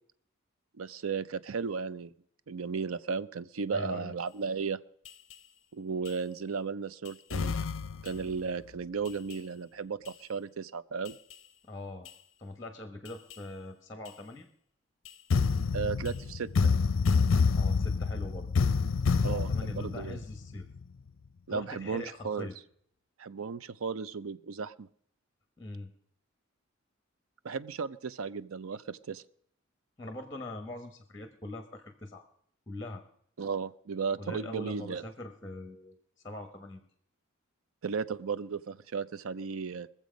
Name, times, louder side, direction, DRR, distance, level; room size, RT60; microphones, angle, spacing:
voice 1, 0.8-2.1 2.5-4.8 5.7-7.5 8.0-11.2 15.7-16.7 19.2-20.2 21.5-22.5 23.2-24.9 27.4-29.2 33.4-35.0 37.8-39.9, right 5 dB, 85° right, 16 dB, 0.5 m, -35 dB
voice 2, 3.7-4.2 11.6-12.1 12.4-14.5 17.5-18.5 19.1-20.7 21.5-22.6 25.6-25.9 30.0-32.2 32.7-33.0 34.2-36.0 36.2-36.8, left 1 dB, 15° left, 7 dB, 1.1 m, -42 dB
sound 1, 5.0-5.3 6.0-6.1 7.1-8.3 9.1-9.3 10.1-10.2 11.0-11.3 12.1-12.2 13.1-13.3 14.1-14.2 15.1-20.8, left 5 dB, 65° left, 0.5 m, -28 dB
21.5 x 7.4 x 5.1 m, 0.65 s
head